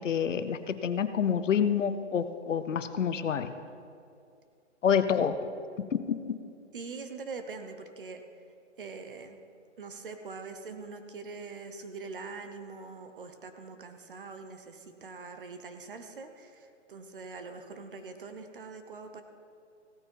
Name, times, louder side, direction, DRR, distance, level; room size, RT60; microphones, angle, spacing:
voice 1, 0.0-3.5 4.8-5.4 5.8-6.4, left 7 dB, 80° left, 11 dB, 0.9 m, -28 dB
voice 2, 6.7-8.2 8.8-9.4 9.8-19.2, right 4 dB, 45° right, 7 dB, 1.0 m, -43 dB
16.0 x 8.9 x 4.6 m, 2.4 s
hypercardioid pair, 175°, 37 cm